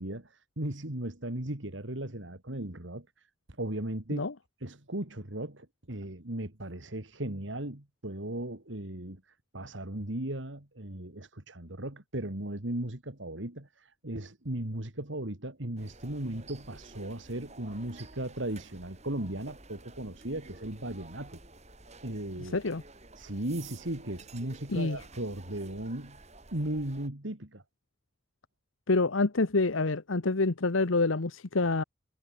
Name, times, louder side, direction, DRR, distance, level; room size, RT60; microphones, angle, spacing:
voice 1, 0.0-3.1 3.6-4.3 4.6-9.2 9.5-21.4 22.0-22.6 23.2-26.2 26.5-27.6, right 1 dB, 70° right, 2.9 m, -37 dB
sound 1, 15.8-27.1, right 3 dB, 35° right, 7.1 m, -52 dB
voice 2, 22.4-22.8 24.7-25.0 28.9-31.8, left 3 dB, 90° left, 1.1 m, -27 dB
head